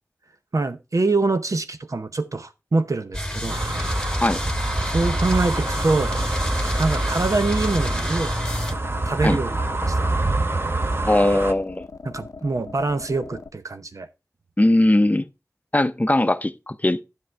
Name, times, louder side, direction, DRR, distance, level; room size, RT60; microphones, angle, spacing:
voice 1, 0.5-3.6 4.8-6.2 6.8-8.3 9.1-10.2 12.0-14.1, right 3 dB, 75° right, 0.7 m, -24 dB
sound 1, 3.1-8.7, left 1 dB, 10° left, 1.2 m, -28 dB
sound 2, 3.5-11.5, right 2 dB, 45° right, 0.8 m, -26 dB
sound 3, 4.8-13.5, left 3 dB, 85° left, 0.5 m, -40 dB
voice 2, 11.0-11.8 14.6-15.3 15.7-17.0, left 1 dB, 30° left, 0.6 m, -19 dB
11.0 x 7.8 x 3.3 m
wide cardioid pair, 45°, 6 cm